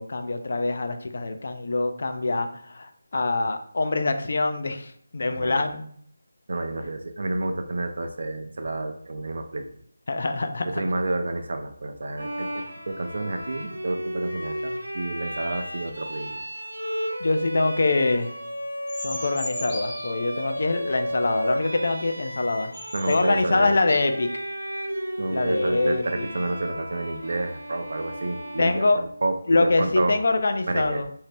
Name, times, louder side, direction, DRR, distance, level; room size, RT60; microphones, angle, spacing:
voice 1, 0.0-5.9 10.1-10.8 17.2-18.3 19.0-22.7 23.1-24.3 25.3-26.3 28.6-29.0 29.5-31.1, left 2 dB, 55° left, 7 dB, 0.3 m, -24 dB
voice 2, 5.3-5.7 6.5-9.8 10.6-16.4 22.9-23.8 25.2-30.2 30.6-31.0, right 2 dB, 55° right, 6 dB, 0.4 m, -30 dB
Bowed string instrument, 12.2-29.6, equal, 85° right, 0.9 m, -33 dB
sound 1, 18.9-20.2 22.3-22.4 22.7-23.2 23.7-24.4, left 1 dB, 20° left, 0.7 m, -37 dB
2.6 x 2.0 x 3.3 m, 0.62 s
figure-of-eight pair, 165°, 0 cm